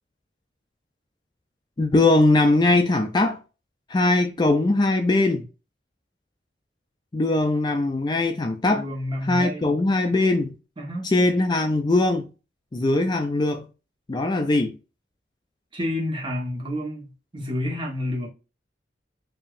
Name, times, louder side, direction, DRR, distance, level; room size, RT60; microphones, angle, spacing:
voice 1, 1.8-3.4 3.9-5.5 7.1-8.8 9.2-10.5 11.0-12.3 12.7-13.7 14.1-14.8, left 2 dB, 25° left, 0.4 m, -21 dB
voice 2, 8.7-9.7 10.8-11.1 15.7-18.3, left 1 dB, 30° right, 1.2 m, -29 dB
4.7 x 2.7 x 2.4 m
head